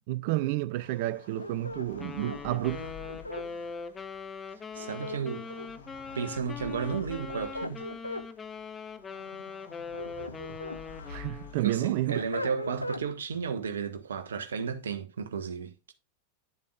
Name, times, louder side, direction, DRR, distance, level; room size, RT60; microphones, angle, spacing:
voice 1, 0.0-2.9 11.1-12.2, right 16 dB, 50° right, 0.5 m, -30 dB
sound 1, 0.7-13.1, left 5 dB, 70° left, 1.5 m, -50 dB
sound 2, 1.4-3.5 4.8-5.9 7.0-8.3 9.7-10.8 11.3-13.1, left 1 dB, 85° left, 0.6 m, -39 dB
Wind instrument woodwind instrument, 2.0-11.6, left 5 dB, 15° left, 0.8 m, -41 dB
voice 2, 4.7-5.5 6.1-7.9 11.5-15.9, right 6 dB, 65° right, 1.2 m, -33 dB
10.5 x 7.4 x 2.4 m
figure-of-eight pair, 90°, 0 cm